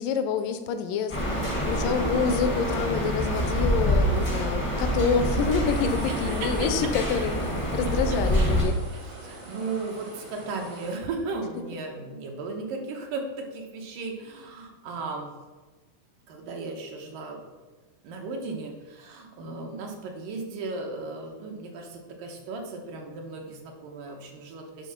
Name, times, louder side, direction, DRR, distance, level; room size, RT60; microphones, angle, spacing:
voice 1, 0.0-7.4 7.7-8.8, left 6 dB, 85° left, 9 dB, 2.3 m, -27 dB
sound 1, 1.1-8.6, equal, 40° left, 0.4 m, -26 dB
sound 2, 5.7-11.0, right 1 dB, 55° right, 0.6 m, -44 dB
voice 2, 6.1-6.7 7.9-15.3 16.3-17.4 18.0-24.9, right 3 dB, 90° right, 1 dB, 2.7 m, -36 dB
9.0 x 3.7 x 5.8 m, 1.2 s
omnidirectional pair, 3.7 m